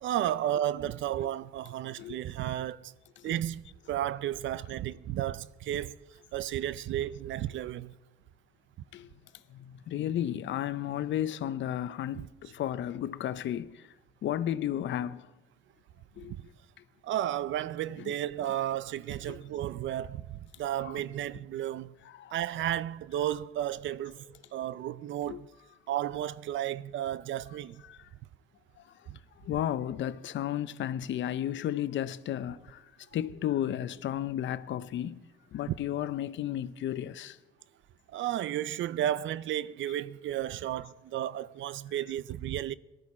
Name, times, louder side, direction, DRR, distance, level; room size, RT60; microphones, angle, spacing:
voice 1, 0.0-2.9 3.2-6.0 6.3-7.9 12.2-12.3 16.3-16.4 17.0-21.9 22.3-24.2 24.5-25.5 25.9-27.8 29.1-29.2 35.7-35.8 38.1-42.7, right 12 dB, 75° right, 0.5 m, -33 dB
voice 2, 9.5-13.8 14.2-15.3 16.2-16.3 19.3-19.4 20.8-20.9 22.2-22.3 25.3-25.4 27.8-28.0 29.4-32.8 33.1-35.2 35.5-37.4, left 11 dB, 70° left, 0.7 m, -33 dB
18.5 x 12.5 x 4.3 m
cardioid pair, 90°, 20 cm